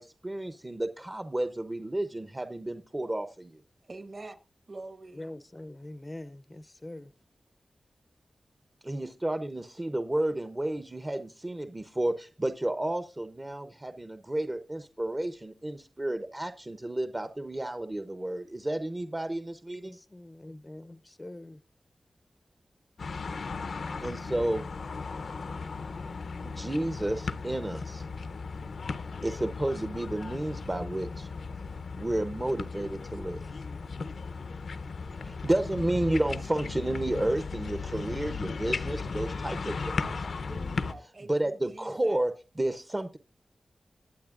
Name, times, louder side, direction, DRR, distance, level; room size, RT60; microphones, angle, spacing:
voice 1, 0.0-3.6 8.8-20.0 24.0-24.6 26.4-28.1 29.2-31.3 32.0-33.6 35.2-40.2 41.2-43.2, right 1 dB, 20° right, 0.6 m, -31 dB
voice 2, 3.8-4.4 4.7-5.3 40.0-42.2, right 2 dB, 45° right, 1.2 m, -46 dB
voice 3, 5.1-7.1 19.8-21.6, left 1 dB, 20° left, 0.5 m, -44 dB
sound 1, 23.0-40.9, left 4 dB, 75° left, 0.6 m, -36 dB
21.0 x 8.3 x 2.4 m
wide cardioid pair, 120°, 0 cm